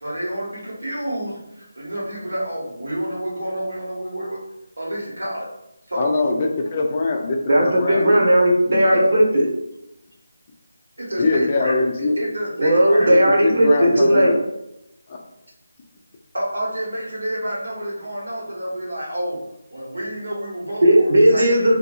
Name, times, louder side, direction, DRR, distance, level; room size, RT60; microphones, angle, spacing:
voice 1, 0.0-1.3 1.7-4.4 4.8-5.5 5.9-6.3 8.9-9.1 11.0-11.8 12.2-13.1 16.3-19.4 19.7-21.7, right 1 dB, 85° right, -5 dB, 1.4 m, -28 dB
voice 2, 6.0-8.3 11.2-12.2 13.0-14.4, left 3 dB, 30° left, 2 dB, 0.3 m, -22 dB
voice 3, 7.5-9.4 12.6-14.3 20.8-21.8, right 1 dB, 60° right, -3 dB, 1.1 m, -16 dB
2.7 x 2.6 x 2.4 m, 0.87 s
figure-of-eight pair, 165°, 0 cm